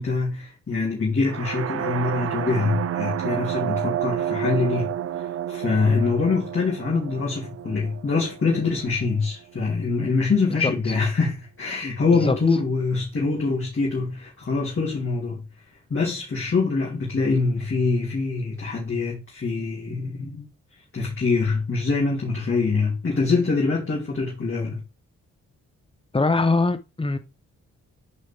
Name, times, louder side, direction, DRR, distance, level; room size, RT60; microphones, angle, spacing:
voice 1, 0.0-4.9 5.5-15.4 15.9-20.5 20.9-24.8, left 4 dB, 40° left, 3.4 m, -24 dB
F Battle horn, 1.2-9.1, right 11 dB, 50° right, 0.5 m, -30 dB
voice 2, 26.1-27.2, left 3 dB, 15° left, 1.2 m, -21 dB
9.6 x 5.1 x 3.6 m
cardioid pair, 65°, 31 cm